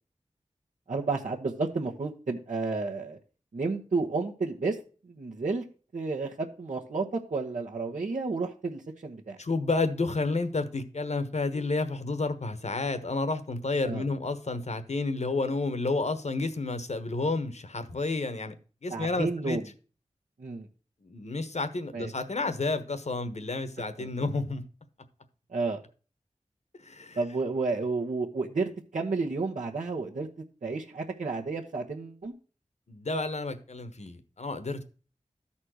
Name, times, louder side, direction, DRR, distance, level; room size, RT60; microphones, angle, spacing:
voice 1, 0.9-3.2 3.5-4.8 5.0-5.6 5.9-9.4 13.8-14.0 18.9-19.6 20.4-20.7 21.9-22.1 24.0-24.1 25.5-25.8 27.2-30.3 30.6-32.3, right 3 dB, 75° right, -5 dB, 1.2 m, -31 dB
voice 2, 9.4-18.5 18.8-19.6 21.0-24.6 26.8-27.2 32.9-34.8, left 3 dB, 65° left, 9 dB, 1.3 m, -30 dB
13.0 x 4.3 x 6.3 m, 0.38 s
cardioid pair, 45°, 13 cm